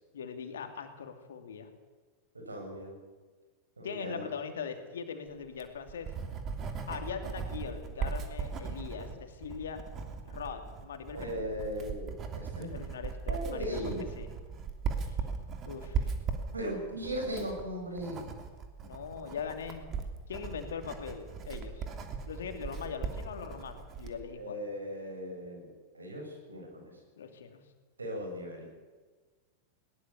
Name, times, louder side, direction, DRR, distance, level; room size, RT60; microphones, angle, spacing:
voice 1, 0.1-1.7 3.8-6.1 6.9-9.8 10.2-11.5 12.6-14.3 15.1-15.2 15.6-16.1 18.8-19.9 20.3-21.8 22.3-24.7 27.2-27.6, left 6 dB, 65° left, 6 dB, 2.8 m, -41 dB
voice 2, 2.3-2.9 3.8-4.2 11.1-12.7 13.3-14.0 16.5-18.2 24.3-25.7 25.9-26.9 28.0-28.8, equal, 75° right, 1 dB, 7.3 m, -38 dB
Writing, 5.4-24.2, right 5 dB, 30° right, 2.9 m, -38 dB
20.5 x 19.5 x 7.1 m, 1.4 s
figure-of-eight pair, 90°, 0 cm